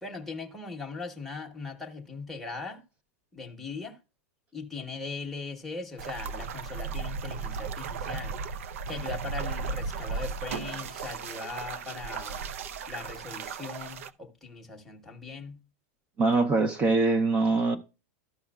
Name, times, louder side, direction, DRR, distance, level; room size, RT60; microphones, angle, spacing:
voice 1, 0.0-2.8 3.3-4.0 4.5-8.4 8.9-12.5 12.9-15.6, left 4 dB, ahead, 0.8 m, -39 dB
sound 1, 6.0-14.1, right 5 dB, 75° right, 0.5 m, -35 dB
voice 2, 16.2-17.8, right 3 dB, 15° right, 0.5 m, -23 dB
13.0 x 5.6 x 2.2 m
supercardioid pair, 180°, 7 cm